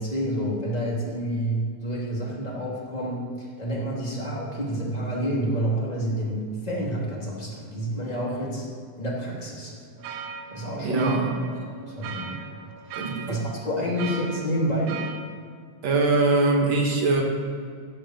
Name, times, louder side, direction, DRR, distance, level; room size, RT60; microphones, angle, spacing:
voice 1, 0.0-8.6 9.0-9.7 10.5-11.1 11.5-12.4 12.8-15.0, right 1 dB, 15° left, -4 dB, 2.8 m, -29 dB
sound 1, 10.0-15.2, right 6 dB, 85° right, 2.5 m, -39 dB
voice 2, 10.8-11.3 12.9-13.4 15.8-17.2, right 3 dB, 60° right, 1 dB, 2.7 m, -22 dB
16.0 x 6.5 x 7.9 m, 2.2 s
omnidirectional pair, 3.6 m